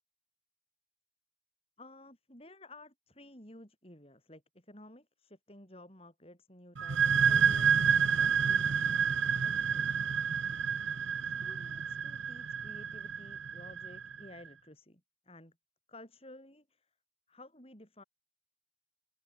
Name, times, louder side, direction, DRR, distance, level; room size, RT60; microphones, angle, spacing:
voice 1, 1.8-8.7 9.0-10.2 11.2-15.6 15.9-16.9 17.3-18.0, left 1 dB, 30° left, 7.2 m, -54 dB
sound 1, 6.8-14.2, right 7 dB, 85° right, 1.0 m, -29 dB
open air
head